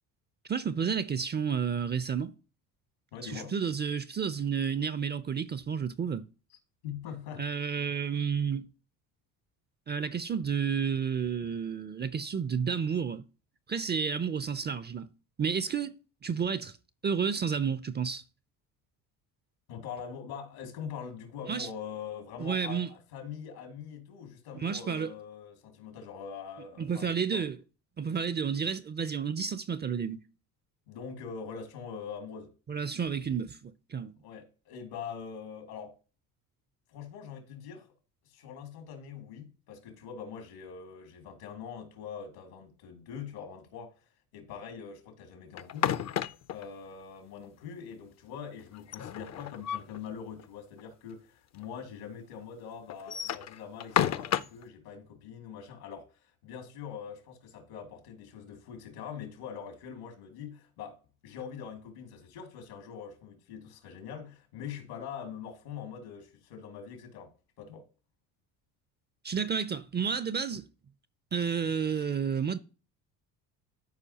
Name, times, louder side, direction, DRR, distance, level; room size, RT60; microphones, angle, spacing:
voice 1, 0.5-2.3 3.2-6.2 7.4-8.7 9.9-13.2 13.7-15.1 15.4-16.0 16.2-16.8 17.0-18.2 21.5-21.7 22.4-22.9 24.6-25.1 26.8-27.6 28.0-30.2 32.7-34.1 69.2-70.7 71.3-72.6, right 6 dB, 25° right, 0.5 m, -31 dB
voice 2, 3.1-3.5 6.8-7.5 19.7-27.4 30.9-32.5 34.2-36.0 36.9-37.9 38.2-43.9 44.3-45.9 46.5-56.1 56.4-61.0 61.2-67.3 67.6-67.9, left 7 dB, 80° left, 2.5 m, -43 dB
sound 1, 45.6-46.6 48.7-50.0 50.4-50.5 50.8-50.9 51.6-51.7 52.9-54.6, left 10 dB, 40° left, 0.5 m, -31 dB
13.5 x 4.8 x 2.9 m
supercardioid pair, 75°, 44 cm